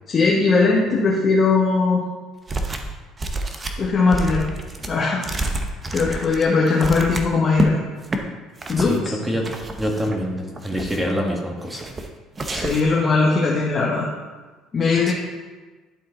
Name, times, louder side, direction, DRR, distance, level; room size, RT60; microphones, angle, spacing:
voice 1, 0.1-2.0 3.8-4.5 4.9-5.4 5.9-7.8 8.7-9.1 12.5-14.1 14.7-15.1, left 4 dB, 40° left, -4 dB, 1.3 m, -19 dB
sound 1, 2.5-2.9 3.2-7.7 8.0-8.2 8.6-9.0 9.4-10.2 10.6-11.2 11.7-12.1 12.4-13.0, right 2 dB, 25° right, 0.9 m, -28 dB
voice 2, 8.8-9.5 9.8-11.9, equal, 10° right, 0 dB, 1.5 m, -26 dB
11.5 x 3.8 x 3.9 m, 1.3 s
supercardioid pair, 85°, 0 cm